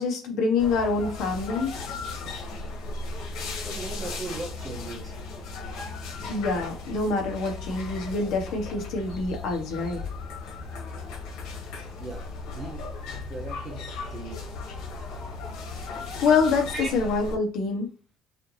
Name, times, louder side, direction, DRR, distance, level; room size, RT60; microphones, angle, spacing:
voice 1, 0.0-1.8 6.3-10.0 15.7-17.9, left 4 dB, 60° left, 1.3 m, -26 dB
sound 1, 0.6-17.3, left 3 dB, 90° left, 1.7 m, -36 dB
voice 2, 3.6-5.1 12.0-12.3 12.5-12.9 13.3-14.5 16.7-16.9, right 3 dB, 20° right, 0.7 m, -38 dB
5.6 x 2.7 x 3.3 m
cardioid pair, 170°, 0 cm